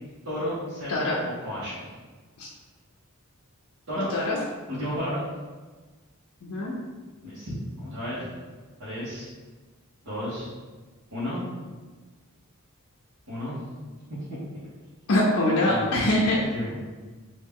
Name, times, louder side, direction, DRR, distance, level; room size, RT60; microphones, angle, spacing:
voice 1, 0.2-1.1 1.4-1.8 3.9-4.1 4.7-5.2 7.2-8.3 8.8-9.3 10.0-10.5 11.1-11.4 13.3-13.6 15.6-15.9 16.3-16.8, equal, 80° right, -13 dB, 1.3 m, -32 dB
voice 2, 4.0-4.4 6.4-6.7 15.1-16.4, left 1 dB, 75° left, -5 dB, 0.5 m, -23 dB
3.1 x 2.6 x 3.5 m, 1.3 s
head